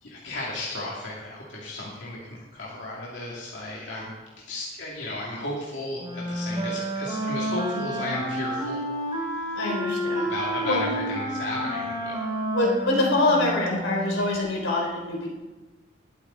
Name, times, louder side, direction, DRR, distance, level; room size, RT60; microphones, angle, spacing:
voice 1, 0.0-4.1 4.5-9.6 10.1-12.2, left 1 dB, 70° left, -5 dB, 2.4 m, -34 dB
Wind instrument woodwind instrument, 6.0-14.2, equal, 25° right, 3.2 m, -30 dB
voice 2, 9.5-10.3 10.7-10.8 12.5-15.3, left 2 dB, 90° left, -1 dB, 3.5 m, -25 dB
21.0 x 8.3 x 3.9 m, 1.2 s
head